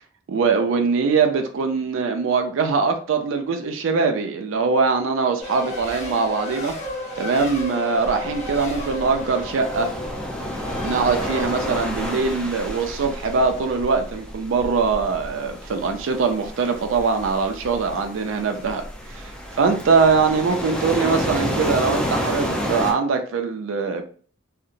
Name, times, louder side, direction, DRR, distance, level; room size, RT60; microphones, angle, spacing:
voice 1, 0.3-6.7 7.2-9.9 10.8-18.8 19.1-24.0, right 4 dB, 75° right, 0.4 m, -22 dB
Race car auto racing, 5.4-12.1, left 1 dB, 35° left, 0.8 m, -33 dB
sound 1, 7.9-22.9, equal, 5° left, 0.4 m, -30 dB
2.8 x 2.1 x 2.5 m
head